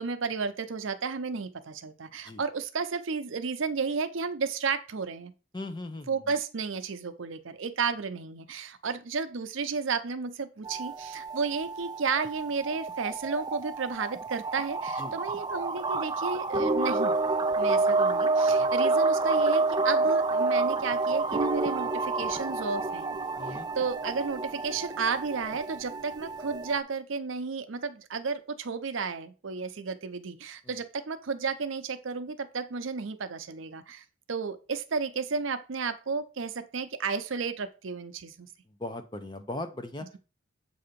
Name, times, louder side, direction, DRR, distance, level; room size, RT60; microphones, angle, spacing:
voice 1, 0.0-5.3 6.1-17.2 17.6-23.1 23.5-38.5, right 5 dB, 70° right, 10 dB, 0.6 m, -32 dB
voice 2, 5.5-6.1 15.0-15.1 18.5-18.7 23.4-23.7 30.7-30.8 38.8-40.1, left 2 dB, 20° left, 8 dB, 0.6 m, -38 dB
sound 1, 10.6-26.8, right 3 dB, 20° right, 0.4 m, -28 dB
7.6 x 2.8 x 5.1 m, 0.33 s
head